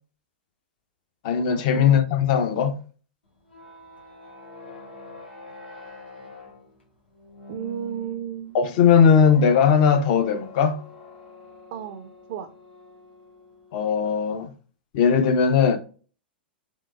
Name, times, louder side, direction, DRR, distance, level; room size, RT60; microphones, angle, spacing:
voice 1, 1.2-2.8 8.5-10.8 13.7-14.5 14.9-15.8, left 7 dB, 50° left, 0.5 m, -19 dB
sound 1, 3.2-14.5, left 2 dB, 80° left, 1.2 m, -46 dB
voice 2, 7.5-8.6 11.7-12.5, right 8 dB, 50° right, 0.3 m, -33 dB
3.6 x 2.7 x 2.3 m
figure-of-eight pair, 100°, 6 cm